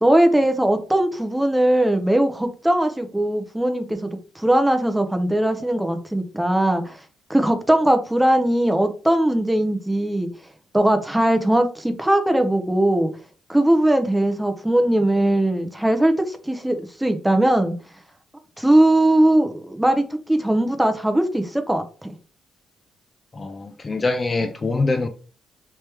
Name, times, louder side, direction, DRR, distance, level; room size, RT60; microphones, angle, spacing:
voice 1, 0.0-4.1 4.4-7.0 7.3-10.3 10.7-13.1 13.5-17.7 18.6-22.1, right 1 dB, 5° right, 0.6 m, -20 dB
voice 2, 23.3-25.1, left 3 dB, 30° left, 0.4 m, -24 dB
3.3 x 3.2 x 3.0 m
cardioid pair, 90°, 0 cm